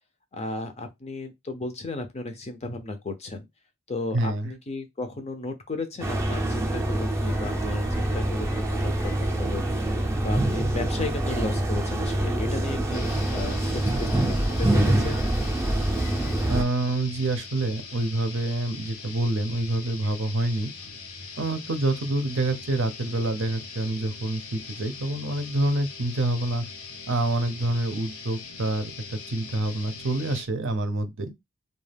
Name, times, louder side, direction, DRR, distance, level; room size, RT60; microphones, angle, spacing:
voice 1, 0.3-3.5 3.9-9.6 10.2-15.2, left 2 dB, 30° left, 0.5 m, -34 dB
voice 2, 4.1-4.5 16.5-20.7 21.4-26.7 27.1-31.3, right 2 dB, 60° right, 0.6 m, -27 dB
sound 1, 6.0-16.6, right 1 dB, 15° right, 0.5 m, -25 dB
sound 2, 12.9-30.5, left 4 dB, 90° left, 0.7 m, -41 dB
2.3 x 2.3 x 3.3 m
head